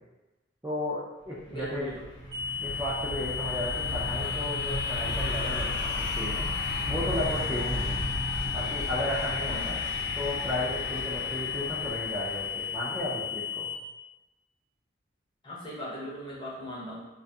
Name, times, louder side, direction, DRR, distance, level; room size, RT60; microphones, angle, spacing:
voice 1, 0.6-1.9 2.6-6.5 6.9-8.0 8.5-9.8 10.2-13.7, left 1 dB, 10° right, -8 dB, 0.3 m, -34 dB
sound 1, 1.4-13.1, equal, 75° left, 0.6 m, -35 dB
voice 2, 1.5-2.0 9.5-9.7 15.4-17.1, equal, 25° left, -6 dB, 0.7 m, -38 dB
sound 2, 2.3-13.7, left 9 dB, 50° right, 0.7 m, -34 dB
2.4 x 2.2 x 2.7 m, 1.0 s
head